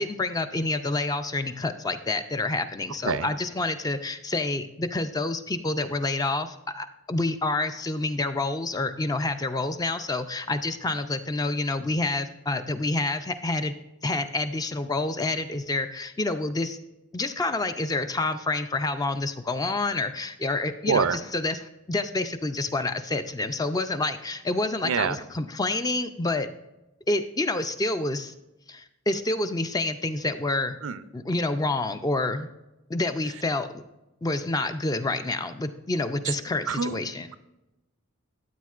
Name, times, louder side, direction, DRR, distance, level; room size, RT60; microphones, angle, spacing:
voice 1, 0.0-13.7 14.0-16.8 17.1-26.5 27.1-28.3 28.7-30.8 31.1-32.5 32.9-33.7 34.2-37.3, left 2 dB, 15° left, 9 dB, 0.4 m, -28 dB
voice 2, 20.9-21.2 24.8-25.2 30.8-31.0 36.7-37.0, right 5 dB, 70° right, 13 dB, 0.5 m, -25 dB
13.5 x 8.3 x 2.4 m, 0.96 s
head